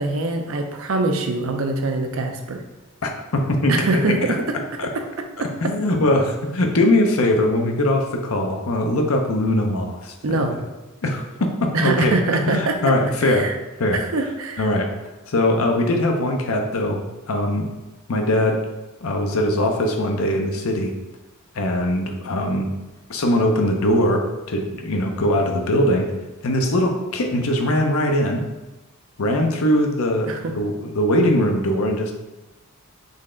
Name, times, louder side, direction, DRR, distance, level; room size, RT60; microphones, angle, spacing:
voice 1, 0.0-2.6 3.7-4.4 4.9-5.0 5.4-5.5 10.2-10.6 11.7-12.9 13.2-13.5 13.9-14.7 30.3-30.5, right 2 dB, 60° right, 4 dB, 0.5 m, -23 dB
voice 2, 3.0-3.8 4.8-4.9 5.4-10.1 11.0-12.2 12.5-13.5 13.8-14.0 14.6-14.9 15.3-17.7 18.1-18.6 19.0-20.9 21.5-22.7 23.1-26.1 26.4-28.4 29.2-32.1, left 1 dB, 65° left, 3 dB, 0.6 m, -21 dB
4.0 x 3.2 x 3.7 m, 1.1 s
head